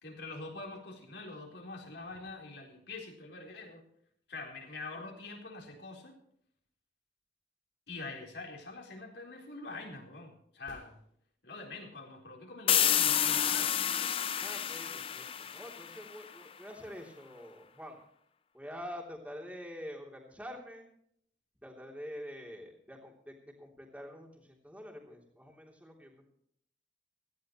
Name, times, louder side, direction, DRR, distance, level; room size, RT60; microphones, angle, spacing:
voice 1, 0.0-3.8 4.3-6.1 7.9-11.0 11.4-13.7, left 3 dB, 65° left, 0 dB, 4.0 m, -45 dB
sound 1, 10.6-11.8 15.7-15.8, left 1 dB, 80° left, 3.7 m, -57 dB
sound 2, 12.7-16.3, left 10 dB, 30° left, 0.5 m, -29 dB
voice 2, 14.4-18.0 18.5-20.9 21.6-26.3, equal, 10° right, 0 dB, 3.2 m, -46 dB
17.5 x 15.0 x 3.1 m, 0.68 s
head